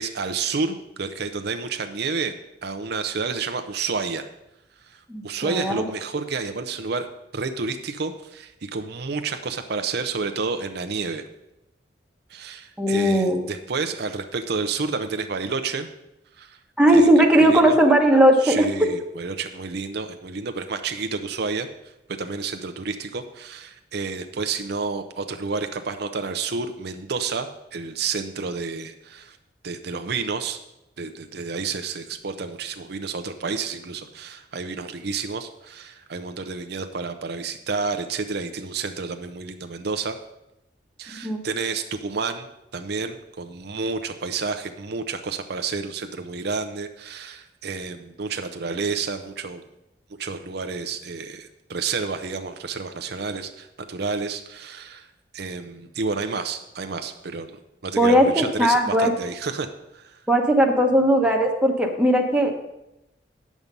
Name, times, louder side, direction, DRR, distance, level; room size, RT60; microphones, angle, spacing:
voice 1, 0.0-2.3 2.6-4.2 5.2-7.1 7.3-11.2 12.3-15.9 16.4-16.6 16.9-17.1 17.4-17.8 18.4-21.7 22.1-29.4 29.6-30.6 31.0-40.2 41.0-42.5 42.7-49.6 50.2-55.1 55.3-59.7 59.9-60.2, right 4 dB, 65° right, 7 dB, 0.6 m, -30 dB
voice 2, 5.1-5.8 12.8-13.4 16.8-18.6 41.2-41.4 58.0-59.1 60.3-62.5, right 1 dB, 5° right, 1 dB, 1.2 m, -18 dB
9.7 x 7.2 x 5.3 m, 0.89 s
head